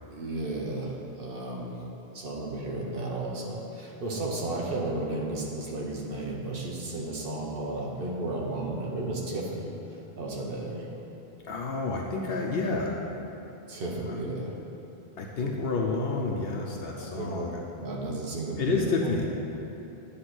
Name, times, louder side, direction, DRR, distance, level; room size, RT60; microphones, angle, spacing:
voice 1, 0.1-1.8 2.1-10.9 13.7-14.5 15.4-15.5 16.9-17.4 17.8-19.3, right 2 dB, 60° right, -2 dB, 1.2 m, -33 dB
voice 2, 11.5-13.0 14.1-14.2 15.2-17.6 18.6-19.3, left 3 dB, 70° left, -1 dB, 0.9 m, -29 dB
9.5 x 3.3 x 6.1 m, 3.0 s
omnidirectional pair, 1.1 m